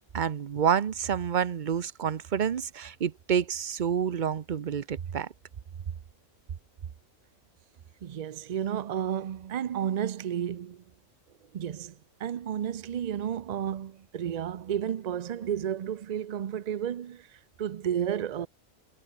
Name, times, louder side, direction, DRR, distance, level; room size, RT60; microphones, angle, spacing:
voice 1, 0.1-5.3, right 8 dB, 45° right, 0.7 m, -28 dB
voice 2, 8.0-10.8 11.5-18.5, right 9 dB, 80° right, 0.3 m, -32 dB
omnidirectional pair, 1.4 m